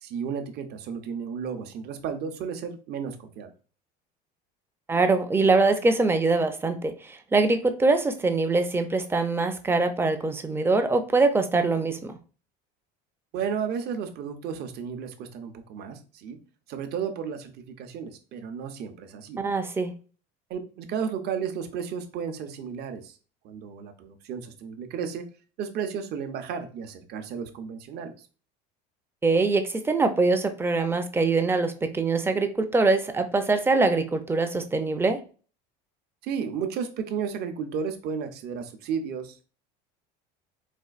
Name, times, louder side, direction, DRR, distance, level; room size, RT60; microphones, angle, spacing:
voice 1, 0.0-3.5 13.3-16.4 16.7-19.4 20.5-23.2 23.4-25.3 25.6-28.1 36.2-39.4, right 7 dB, 50° right, 7 dB, 0.6 m, -33 dB
voice 2, 4.9-12.1 19.4-19.9 29.2-35.2, right 3 dB, 10° right, 7 dB, 0.4 m, -23 dB
4.3 x 2.4 x 2.4 m, 0.38 s
supercardioid pair, 115°, 21 cm